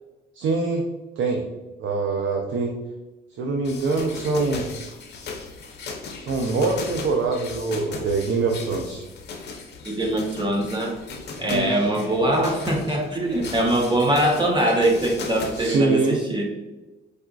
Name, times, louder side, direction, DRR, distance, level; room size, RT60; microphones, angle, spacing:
voice 1, 0.3-0.8 1.2-1.4 1.8-2.7 3.4-4.7 6.2-9.0 11.5-12.2 15.5-16.2, right 3 dB, 75° right, 2 dB, 0.5 m, -24 dB
sound 1, 3.6-15.8, left 4 dB, 55° left, 0.6 m, -37 dB
voice 2, 9.8-10.9 11.4-16.4, right 1 dB, 25° right, 0 dB, 0.7 m, -22 dB
4.8 x 2.4 x 2.3 m, 1.1 s
cardioid pair, 90°, 20 cm